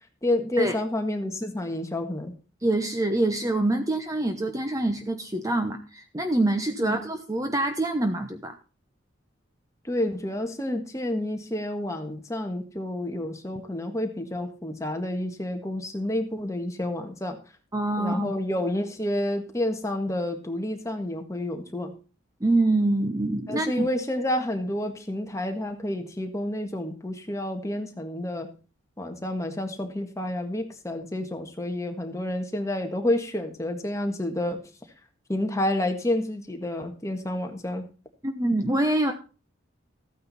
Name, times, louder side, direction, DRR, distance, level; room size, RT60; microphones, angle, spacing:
voice 1, 0.2-2.4 6.8-7.0 9.9-17.4 18.0-22.0 23.5-28.5 29.0-34.6 35.3-37.9, left 1 dB, 15° left, 4 dB, 1.6 m, -29 dB
voice 2, 2.6-8.5 17.7-18.4 22.4-23.9 38.2-39.1, right 2 dB, 15° right, 6 dB, 0.9 m, -25 dB
14.5 x 9.3 x 4.2 m, 0.35 s
head